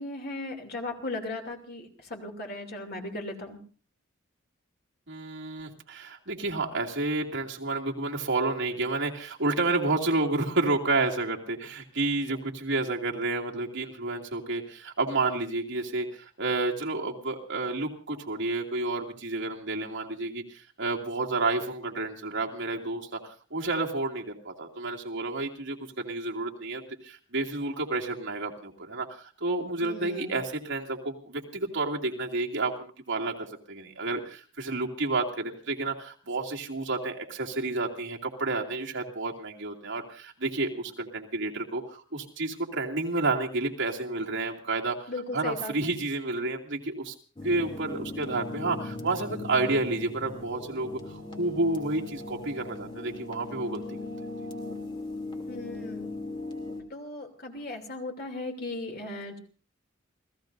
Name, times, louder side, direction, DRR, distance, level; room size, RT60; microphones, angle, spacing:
voice 1, 0.0-3.6 29.8-30.4 45.1-45.7 55.5-56.1 56.9-59.4, left 2 dB, 50° left, 3 dB, 2.8 m, -37 dB
voice 2, 5.1-47.1 47.4-54.0, right 2 dB, 65° right, -1 dB, 2.5 m, -30 dB
sound 1, 47.4-56.8, left 2 dB, 25° left, 2.7 m, -38 dB
29.0 x 16.0 x 2.7 m, 0.38 s
head